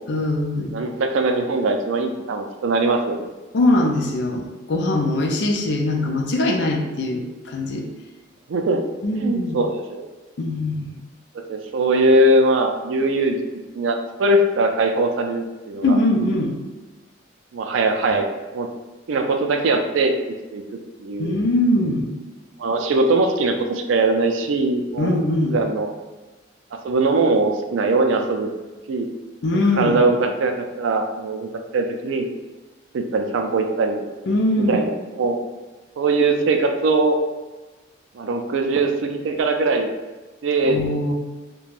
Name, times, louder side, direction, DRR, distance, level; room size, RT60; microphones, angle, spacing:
voice 1, 0.1-0.8 3.5-7.9 9.0-9.6 10.4-11.0 15.8-16.6 21.2-22.1 25.0-25.6 29.4-30.0 34.3-34.8 40.6-41.1, left 1 dB, 60° left, 2 dB, 0.4 m, -21 dB
voice 2, 0.7-3.3 8.5-8.8 9.2-10.1 11.3-13.4 13.7-16.0 17.5-18.2 18.5-18.7 19.1-20.2 20.5-20.6 21.0-21.3 22.6-25.2 25.5-25.9 26.7-28.5 28.9-29.1 29.8-32.3 32.9-34.1 34.6-35.5 36.0-37.2 38.1-39.9 40.4-41.1, right 2 dB, 80° right, 5 dB, 0.3 m, -21 dB
2.4 x 2.2 x 3.3 m, 1.2 s
head